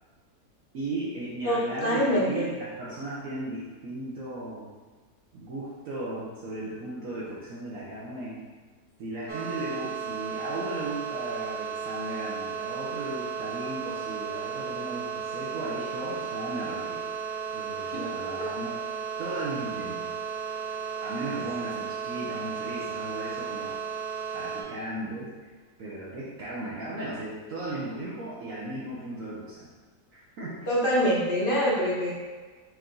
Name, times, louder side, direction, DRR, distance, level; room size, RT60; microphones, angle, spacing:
voice 1, 0.7-4.7 5.3-8.4 9.0-17.0 17.5-18.8 19.2-20.1 21.0-23.7 24.3-25.3 25.8-29.7 30.1-30.7, right 2 dB, 60° right, -7 dB, 1.1 m, -36 dB
voice 2, 1.4-2.5 17.9-18.0 30.7-32.1, equal, 40° left, -5 dB, 0.8 m, -25 dB
sound 1, 9.3-24.6, right 6 dB, 90° right, 0.4 m, -34 dB
4.8 x 2.6 x 3.7 m, 1.4 s
omnidirectional pair, 1.7 m